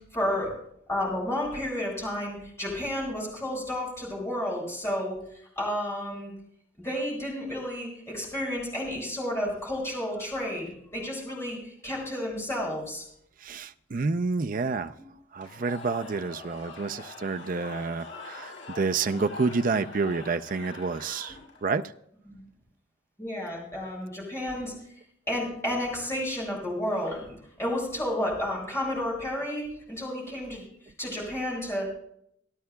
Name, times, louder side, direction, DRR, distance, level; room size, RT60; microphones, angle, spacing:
voice 1, 0.1-0.5 0.9-6.3 6.8-13.0 22.3-22.4 23.2-24.7 25.3-30.6 31.0-31.9, left 1 dB, 15° left, -4 dB, 7.3 m, -31 dB
voice 2, 13.4-14.9 15.3-21.4 21.6-21.8, right 4 dB, 45° right, 9 dB, 0.5 m, -29 dB
Cheering / Crowd, 15.4-21.7, left 3 dB, 75° left, 7.4 m, -44 dB
27.0 x 12.5 x 2.3 m, 0.72 s
head